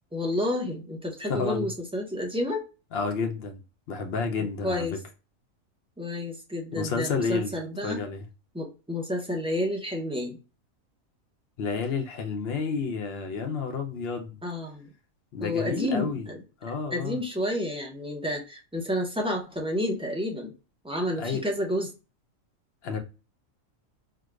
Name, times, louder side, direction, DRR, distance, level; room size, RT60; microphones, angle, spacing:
voice 1, 0.1-2.6 4.6-4.9 6.0-8.0 8.5-10.4 14.4-14.9 15.4-16.4 16.9-20.5 20.8-21.9, left 1 dB, 5° right, 0.5 m, -30 dB
voice 2, 1.3-1.7 2.9-3.6 3.9-5.0 6.7-7.5 7.8-8.3 11.6-14.4 15.3-16.3 16.6-17.2 21.2-21.4 22.8-23.0, left 5 dB, 60° left, 0.8 m, -30 dB
4.6 x 2.2 x 2.3 m
omnidirectional pair, 1.4 m